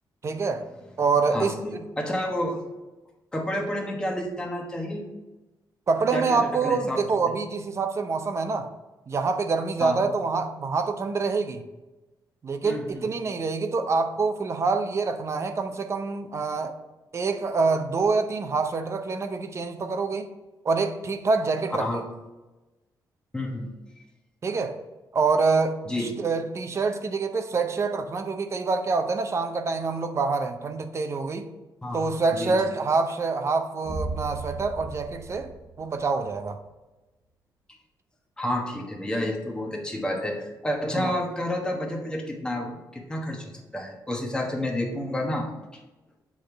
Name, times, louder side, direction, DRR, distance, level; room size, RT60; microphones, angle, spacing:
voice 1, 0.2-0.6 1.0-1.8 5.9-8.7 9.1-11.6 12.4-16.8 17.1-20.3 20.6-22.0 24.4-24.8 25.1-31.5 31.9-35.5 35.8-36.6 41.0-41.1, right 4 dB, 40° right, 7 dB, 0.6 m, -26 dB
voice 2, 1.3-2.6 3.3-5.0 6.1-7.0 9.8-10.1 12.6-13.1 21.8-22.0 23.3-23.7 25.9-26.1 31.8-32.5 38.4-45.5, left 1 dB, 10° left, 1 dB, 1.1 m, -30 dB
sound 1, 33.9-36.5, right 3 dB, 80° right, 1.2 m, -36 dB
7.8 x 3.5 x 4.6 m, 1.1 s
cardioid pair, 120°, 8 cm